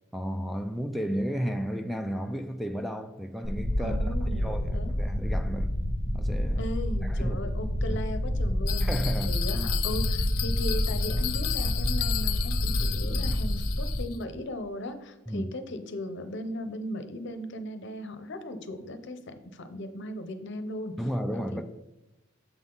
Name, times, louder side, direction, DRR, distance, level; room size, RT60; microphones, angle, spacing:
voice 1, 0.1-5.8 6.1-6.7 7.0-7.4 7.9-8.0 8.8-9.4 15.3-15.5 21.0-21.6, equal, ahead, 0.3 m, -33 dB
sound 1, 3.4-14.0, equal, 60° right, 2.3 m, -28 dB
voice 2, 3.8-4.9 6.6-20.9 21.3-21.6, left 1 dB, 60° left, 0.7 m, -37 dB
Bell, 8.7-14.2, left 16 dB, 90° left, 0.4 m, -34 dB
7.0 x 5.8 x 3.8 m
head